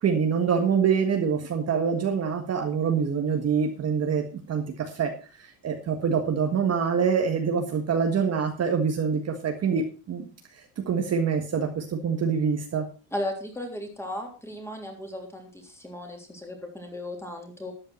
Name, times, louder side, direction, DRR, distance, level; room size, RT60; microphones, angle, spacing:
voice 1, 0.0-5.1 5.6-10.2 10.8-12.8, right 6 dB, 35° right, 4 dB, 1.6 m, -25 dB
voice 2, 13.1-17.7, left 1 dB, 5° left, 2 dB, 3.3 m, -36 dB
13.0 x 8.9 x 4.4 m, 0.34 s
cardioid pair, 145°, 46 cm